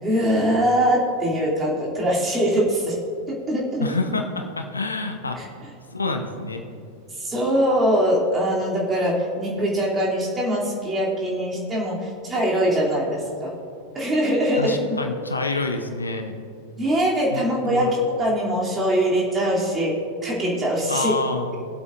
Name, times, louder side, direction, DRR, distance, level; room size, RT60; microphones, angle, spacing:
voice 1, 0.0-3.0 3.3-3.9 5.4-5.5 7.2-13.6 13.9-14.8 16.8-19.9 20.2-21.2, equal, 20° right, -5 dB, 2.9 m, -22 dB
voice 2, 3.8-5.4 5.9-6.6 14.6-16.4 17.3-18.0 20.9-21.7, left 3 dB, 80° left, 5 dB, 0.8 m, -28 dB
21.0 x 8.0 x 2.6 m, 2.5 s
figure-of-eight pair, 90°, 0 cm